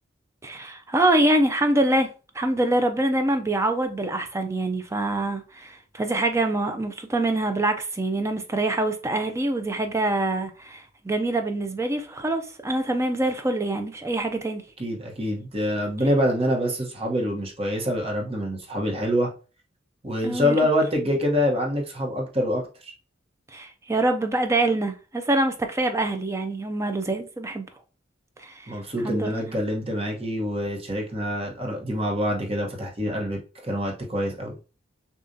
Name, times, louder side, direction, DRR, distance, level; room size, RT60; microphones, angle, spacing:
voice 1, 0.4-2.1 2.3-14.6 20.2-20.6 23.5-27.6 28.4-28.7 29.0-29.4, right 2 dB, 15° right, 0.4 m, -25 dB
voice 2, 14.8-19.3 20.0-22.9 28.7-34.6, equal, 30° right, 1.0 m, -26 dB
6.4 x 2.4 x 2.7 m
head